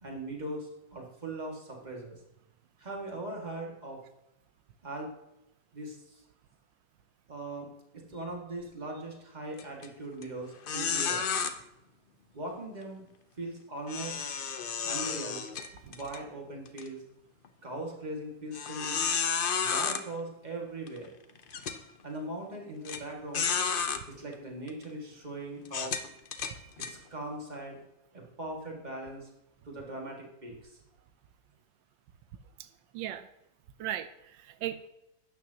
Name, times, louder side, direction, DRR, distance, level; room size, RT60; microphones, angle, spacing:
voice 1, 0.0-2.2 2.8-4.0 4.8-5.1 5.7-6.2 7.3-11.2 12.3-13.1 13.4-14.2 14.8-15.5 15.9-17.0 17.6-19.0 19.6-21.1 22.0-23.5 24.1-26.0 26.8-27.8 28.1-29.3 29.6-30.8, right 2 dB, 25° right, -1 dB, 2.1 m, -40 dB
sound 1, 9.6-9.9 10.2-10.3 10.7-11.5 13.9-16.2 16.7-16.8 17.4-17.5 18.5-20.0 20.9-21.0 21.5-21.8 22.9-23.0 23.3-24.0 24.7-24.8 25.7-26.9, left 6 dB, 85° left, 0.4 m, -31 dB
voice 2, 32.9-33.3 33.8-34.9, right 11 dB, 90° right, 12 dB, 1.3 m, -37 dB
12.5 x 9.4 x 2.9 m, 0.87 s
omnidirectional pair, 1.9 m